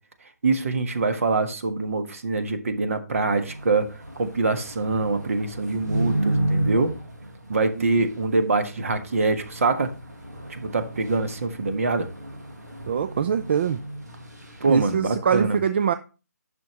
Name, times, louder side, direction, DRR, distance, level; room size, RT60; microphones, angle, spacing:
voice 1, 0.4-6.9 7.5-9.9 10.5-12.1 14.6-15.6, right 3 dB, 55° right, 1.4 m, -24 dB
sound 1, 3.3-14.9, right 1 dB, 85° right, 2.1 m, -33 dB
voice 2, 12.9-13.8 14.7-15.9, right 7 dB, 40° right, 0.5 m, -23 dB
10.0 x 6.4 x 3.1 m
figure-of-eight pair, 145°, 9 cm